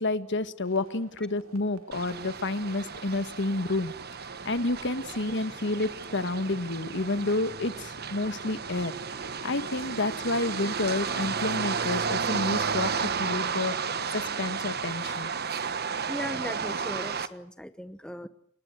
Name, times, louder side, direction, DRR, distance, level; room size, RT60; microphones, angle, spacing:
voice 1, 0.0-3.9 4.4-8.9 9.4-15.3, left 2 dB, 55° left, 12 dB, 1.6 m, -30 dB
sound 1, 0.6-17.1, right 2 dB, 85° right, 2.7 m, -54 dB
sound 2, 1.9-17.3, right 6 dB, 50° right, 1.3 m, -33 dB
voice 2, 16.0-18.3, equal, 5° left, 11 dB, 1.0 m, -38 dB
29.0 x 20.0 x 8.1 m, 0.65 s
head